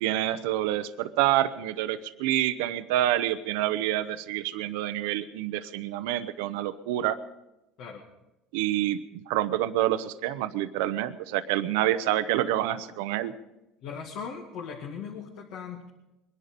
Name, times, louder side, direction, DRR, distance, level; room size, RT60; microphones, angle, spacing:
voice 1, 0.0-7.2 8.5-9.0 9.3-13.3, right 13 dB, 90° right, 12 dB, 0.7 m, -27 dB
voice 2, 7.8-8.1 13.8-15.9, left 6 dB, 60° left, 0 dB, 2.1 m, -39 dB
22.5 x 11.0 x 5.2 m, 0.94 s
cardioid pair, 140°, 0 cm